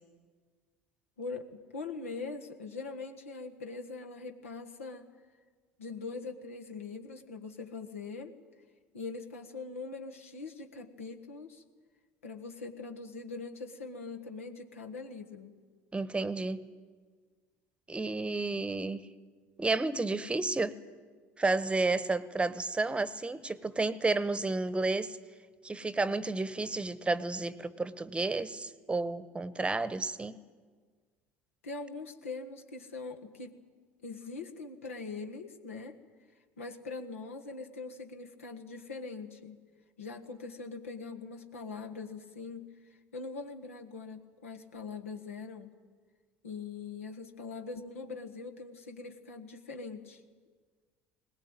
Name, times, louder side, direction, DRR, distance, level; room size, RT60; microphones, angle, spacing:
voice 1, 1.2-5.1 5.8-8.3 8.9-11.6 12.2-15.5 31.6-33.6 34.0-36.0 36.6-39.6 40.0-45.7 46.4-50.2, left 4 dB, 85° left, 4 dB, 1.6 m, -42 dB
voice 2, 15.9-16.7 17.9-19.1 19.6-20.8 21.4-25.2 25.6-30.4, right 3 dB, 15° right, 17 dB, 1.0 m, -31 dB
20.5 x 19.0 x 9.0 m, 1.5 s
hypercardioid pair, 70°, 7 cm